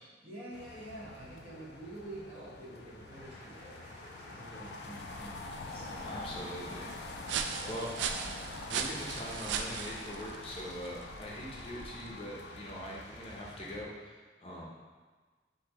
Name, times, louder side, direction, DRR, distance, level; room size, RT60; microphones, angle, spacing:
voice 1, 0.2-3.8 4.2-6.5 7.6-7.7, right 1 dB, 35° right, -7 dB, 1.1 m, -48 dB
sound 1, 0.5-13.8, left 2 dB, 70° left, 0.4 m, -46 dB
sound 2, 3.1-10.4, equal, 15° right, 1.4 m, -55 dB
sound 3, 4.8-12.3, right 6 dB, 85° right, 0.3 m, -40 dB
voice 2, 6.0-6.9 7.3-8.1 8.7-14.6, equal, 35° left, -4 dB, 0.7 m, -42 dB
6.0 x 2.7 x 3.0 m, 1.4 s
head